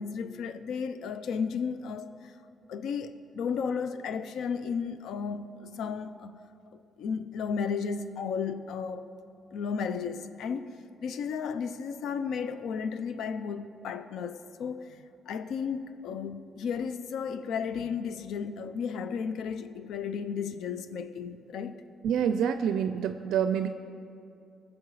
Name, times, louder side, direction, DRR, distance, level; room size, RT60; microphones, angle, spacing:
voice 1, 0.0-2.3 2.7-6.4 6.7-9.0 9.5-10.7 11.0-21.8, left 6 dB, 75° left, 12 dB, 0.6 m, -34 dB
voice 2, 22.0-23.7, right 8 dB, 80° right, 8 dB, 0.4 m, -27 dB
20.0 x 7.3 x 4.8 m, 2.6 s
cardioid pair, 90°, 0 cm